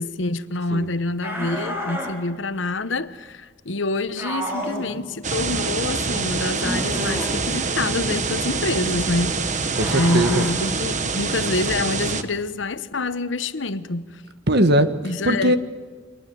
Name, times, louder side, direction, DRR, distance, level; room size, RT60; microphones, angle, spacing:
voice 1, 0.0-9.6 9.9-14.2 15.0-15.5, left 2 dB, 75° left, 1.1 m, -26 dB
sound 1, 1.2-2.1 4.2-4.9 6.5-7.4 9.7-10.5, equal, 10° right, 6.2 m, -30 dB
sound 2, 5.2-12.2, right 4 dB, 40° right, 1.4 m, -25 dB
voice 2, 9.8-10.4 14.5-14.9 15.2-15.6, right 1 dB, 60° right, 1.6 m, -19 dB
29.0 x 23.5 x 7.8 m
head